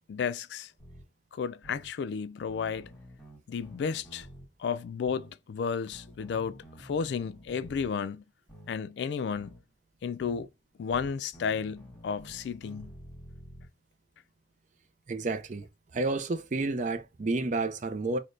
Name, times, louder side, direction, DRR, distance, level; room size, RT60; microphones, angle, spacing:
voice 1, 0.1-0.7 1.3-2.9 3.5-4.3 4.6-8.2 8.7-9.5 10.0-10.5 10.8-12.9, left 6 dB, 70° left, 0.3 m, -33 dB
sound 1, 0.8-1.0 1.6-1.9 2.5-4.5 5.1-5.3 5.9-7.9 8.5-8.7 9.3-9.6 10.2-10.5 10.9-13.7, equal, 5° left, 1.6 m, -49 dB
voice 2, 15.1-15.7 15.9-18.2, right 3 dB, 40° right, 0.4 m, -30 dB
6.3 x 2.1 x 2.5 m
head